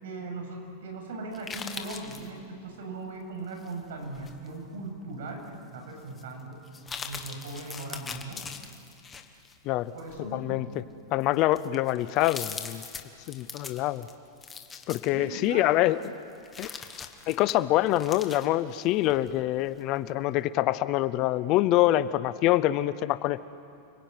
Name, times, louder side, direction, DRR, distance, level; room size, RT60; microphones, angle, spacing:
voice 1, 0.0-6.6 7.0-8.4 9.9-10.7 15.1-15.7, right 2 dB, 75° right, 3 dB, 7.7 m, -39 dB
sound 1, 1.3-2.3 3.6-4.5 5.0-5.1 6.1-6.2 6.7-9.5 10.0-10.2 10.9-11.0 11.3-15.6 16.0-19.3 19.7-19.8, left 6 dB, 10° left, 1.2 m, -41 dB
voice 2, 10.2-10.7 11.1-12.8 13.3-14.1 14.9-16.0 16.6-16.7 17.3-23.4, left 15 dB, 30° left, 15 dB, 0.6 m, -25 dB
29.5 x 21.5 x 9.4 m, 2.5 s
supercardioid pair, 180°, 0 cm